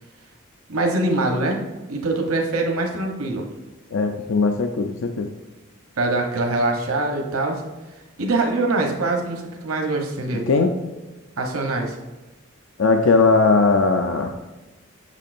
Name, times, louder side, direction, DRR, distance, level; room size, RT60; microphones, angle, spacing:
voice 1, 0.7-1.6 1.9-3.4 6.0-7.6 8.2-10.5 11.4-11.9, right 2 dB, 90° right, 1 dB, 1.1 m, -23 dB
voice 2, 3.9-5.3 10.3-10.8 12.8-14.4, left 4 dB, 60° left, 5 dB, 0.5 m, -19 dB
8.3 x 6.6 x 2.6 m, 1.2 s
head